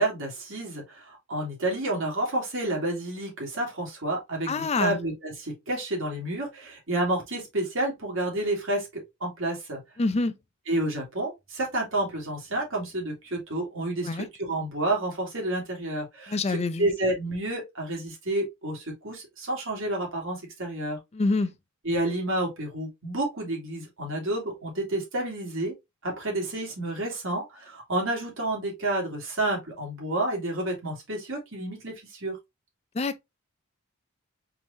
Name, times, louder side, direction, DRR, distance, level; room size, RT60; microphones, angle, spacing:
voice 1, 0.0-9.8 10.7-21.0 21.8-25.7 26.0-32.4, right 1 dB, 65° right, 2.4 m, -30 dB
voice 2, 4.5-5.0 10.0-10.3 14.0-14.3 16.3-16.9 21.1-21.5 32.9-33.2, left 3 dB, 30° left, 0.5 m, -26 dB
4.7 x 3.6 x 2.6 m
head